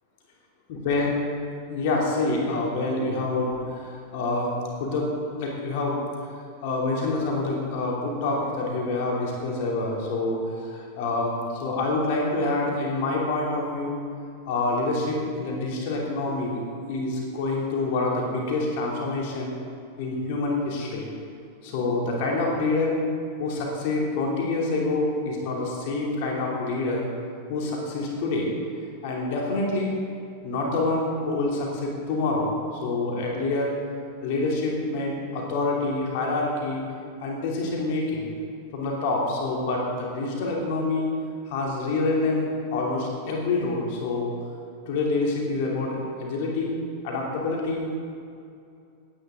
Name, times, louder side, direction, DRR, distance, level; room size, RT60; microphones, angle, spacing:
voice 1, 0.7-1.1 1.7-4.5 4.8-6.0 6.6-14.0 14.4-16.6 16.9-19.5 20.0-21.1 21.6-23.0 23.4-27.1 27.5-28.5 29.0-29.9 30.4-32.5 32.8-33.7 34.2-36.8 37.2-38.3 38.7-41.1 41.5-44.3 44.9-46.7 47.0-48.0, left 2 dB, 50° left, -2 dB, 2.9 m, -27 dB
17.5 x 9.6 x 3.8 m, 2.5 s
figure-of-eight pair, 90°, 0 cm